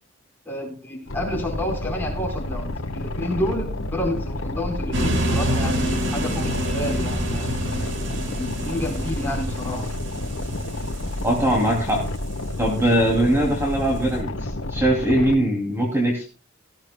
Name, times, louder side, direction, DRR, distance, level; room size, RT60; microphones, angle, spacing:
voice 1, 0.4-7.5 8.4-9.9 15.2-15.5, left 1 dB, 10° left, -1 dB, 4.5 m, -30 dB
Boat Water vehicle, 1.1-15.3, left 1 dB, 75° left, 1.3 m, -30 dB
sound 1, 4.9-13.0, right 1 dB, 60° right, 2.2 m, -28 dB
voice 2, 11.2-12.0 12.6-16.2, right 1 dB, 10° right, -1 dB, 2.8 m, -21 dB
18.0 x 15.0 x 2.3 m, 0.33 s
head